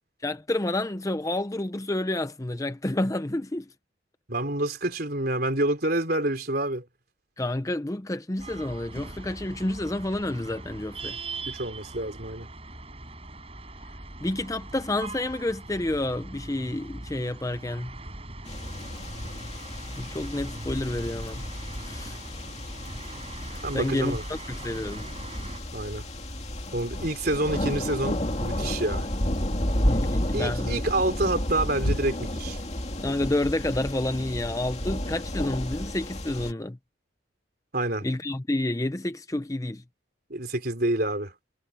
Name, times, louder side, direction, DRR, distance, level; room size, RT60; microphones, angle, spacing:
voice 1, 0.2-3.7 7.4-11.2 14.2-17.9 20.0-21.4 21.8-22.2 23.7-25.1 29.8-30.8 33.0-36.8 38.0-39.8, left 1 dB, 15° left, 0.6 m, -29 dB
voice 2, 4.3-6.8 11.5-12.5 23.6-24.2 25.7-26.1 26.7-29.1 30.3-32.6 37.7-38.1 40.3-41.3, right 1 dB, 50° right, 4.0 m, -28 dB
sound 1, 8.4-25.6, right 2 dB, 30° right, 8.0 m, -41 dB
sound 2, 18.5-36.5, left 1 dB, 35° left, 2.6 m, -32 dB
sound 3, 31.3-32.0, equal, 80° left, 5.2 m, -36 dB
head